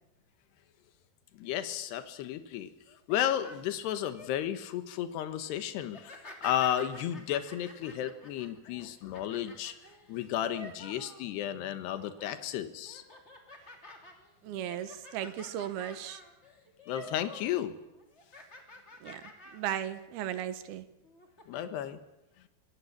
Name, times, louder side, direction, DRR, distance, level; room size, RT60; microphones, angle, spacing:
voice 1, 1.4-2.7 3.1-6.2 6.4-9.7 10.1-13.0 16.9-17.8 21.5-22.0, left 11 dB, 75° left, 10 dB, 3.4 m, -33 dB
sound 1, 2.9-4.3 4.8-5.1 5.8-11.6 11.9-12.4 12.8-17.6 17.8-19.8 20.2-20.3 21.0-21.6, left 2 dB, 20° left, 2.5 m, -50 dB
voice 2, 14.4-16.2 19.0-19.2 19.5-20.8, right 10 dB, 70° right, 11 dB, 2.9 m, -36 dB
25.5 x 17.5 x 8.6 m, 0.97 s
omnidirectional pair, 5.0 m